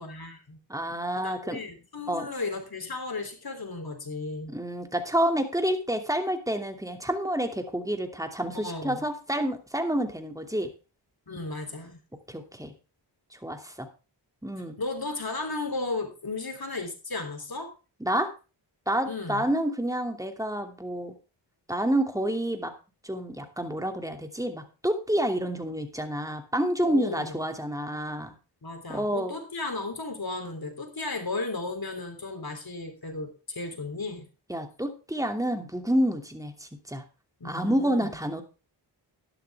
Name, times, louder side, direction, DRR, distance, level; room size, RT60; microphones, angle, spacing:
voice 1, 0.0-0.6 1.2-4.5 8.5-9.0 11.3-12.0 14.8-17.7 19.1-19.4 26.8-27.4 28.6-34.3 37.4-38.1, left 3 dB, 50° left, 5 dB, 3.5 m, -35 dB
voice 2, 0.7-1.6 2.1-2.3 4.5-10.7 12.3-12.7 13.3-13.9 14.4-14.8 18.0-18.3 18.9-21.2 21.7-22.7 23.0-28.3 28.9-29.3 34.5-37.0 37.4-38.4, right 1 dB, 5° right, 5 dB, 2.7 m, -29 dB
12.0 x 11.0 x 3.6 m, 0.32 s
cardioid pair, 45°, 46 cm